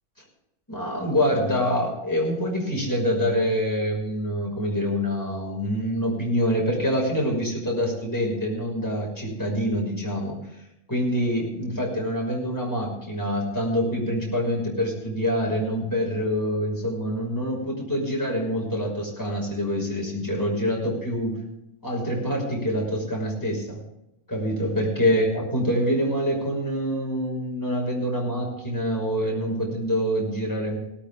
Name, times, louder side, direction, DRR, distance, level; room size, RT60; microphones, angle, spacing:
voice 1, 0.7-10.4 10.9-21.4 21.8-23.8 24.3-30.8, equal, 10° left, -2 dB, 5.8 m, -26 dB
18.5 x 13.0 x 3.7 m, 0.82 s
omnidirectional pair, 1.9 m